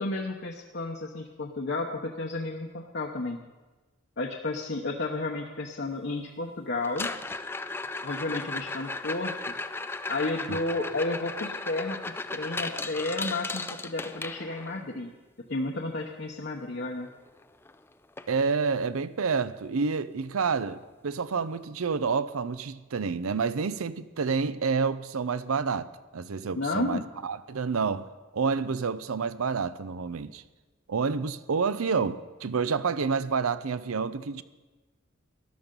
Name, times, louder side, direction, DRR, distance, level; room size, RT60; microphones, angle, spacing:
voice 1, 0.0-3.4 4.2-7.1 8.0-9.5 10.1-15.1 15.5-17.1 26.6-27.1, left 2 dB, 55° left, 0.9 m, -32 dB
sound 1, 6.8-14.8 17.1-17.2 17.4-17.7 18.2-18.3 18.8-18.9 20.8-20.9, left 3 dB, 10° left, 0.3 m, -36 dB
voice 2, 10.5-10.9 18.3-28.1 28.3-30.4 30.9-34.4, right 5 dB, 90° right, 0.6 m, -29 dB
13.0 x 11.5 x 5.3 m
head